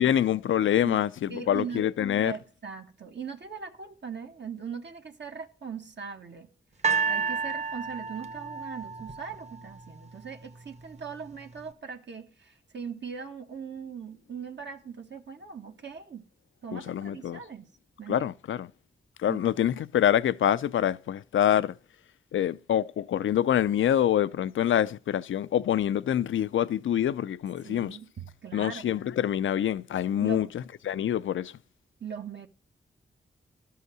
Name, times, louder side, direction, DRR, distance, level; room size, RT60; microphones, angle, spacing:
voice 1, 0.0-2.3 16.7-17.4 18.1-18.7 19.2-21.7 22.3-28.0 28.5-31.5, left 10 dB, 80° left, 0.5 m, -26 dB
voice 2, 1.3-1.9 2.2-6.5 6.9-16.3 16.6-17.7 18.0-18.3 19.3-19.4 27.6-28.9 30.2-30.5 32.0-32.5, right 6 dB, 60° right, 1.3 m, -40 dB
sound 1, 6.8-10.0 10.8-10.9, right 5 dB, 35° right, 1.0 m, -30 dB
12.5 x 5.6 x 6.1 m
cardioid pair, 50°, 20 cm